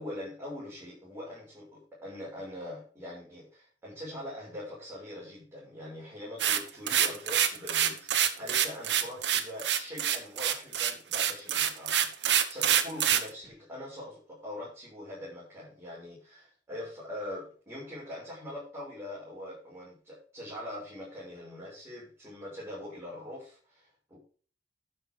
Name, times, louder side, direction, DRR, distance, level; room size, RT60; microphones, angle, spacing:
voice 1, 0.0-24.2, left 1 dB, 15° right, -8 dB, 6.4 m, -43 dB
sound 1, 6.4-13.3, right 9 dB, 75° right, 1.4 m, -26 dB
12.0 x 6.9 x 5.1 m, 0.41 s
head